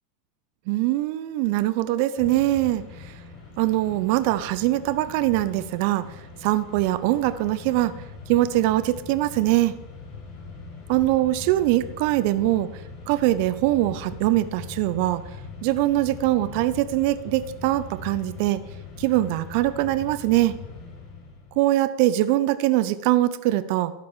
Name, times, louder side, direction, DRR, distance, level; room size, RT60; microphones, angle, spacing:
voice 1, 0.7-3.1 3.6-6.0 6.4-7.9 8.3-9.7 10.9-12.7 13.1-15.2 15.6-18.6 19.0-20.6 21.6-23.9, right 15 dB, 55° right, 12 dB, 0.7 m, -22 dB
Mechanisms, 2.2-21.6, left 4 dB, 45° left, 4.2 m, -41 dB
12.5 x 5.3 x 9.1 m, 0.94 s
hypercardioid pair, 90°, 0 cm